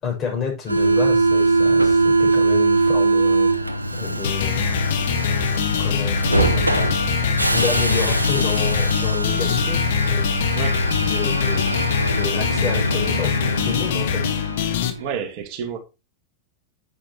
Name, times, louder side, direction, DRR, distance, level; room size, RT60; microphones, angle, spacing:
voice 1, 0.0-4.7 5.8-6.9 7.5-10.3 10.9-14.4, left 6 dB, 30° left, 5.9 m, -29 dB
Subway metro underground, 0.7-15.0, right 3 dB, 85° right, 1.0 m, -22 dB
sound 1, 4.2-14.9, left 7 dB, 55° left, 1.6 m, -24 dB
sound 2, 5.7-13.1, left 2 dB, 85° left, 0.4 m, -29 dB
voice 2, 10.5-10.9 15.0-15.8, right 7 dB, 45° right, 2.1 m, -29 dB
10.0 x 8.5 x 2.9 m
figure-of-eight pair, 90°, 0 cm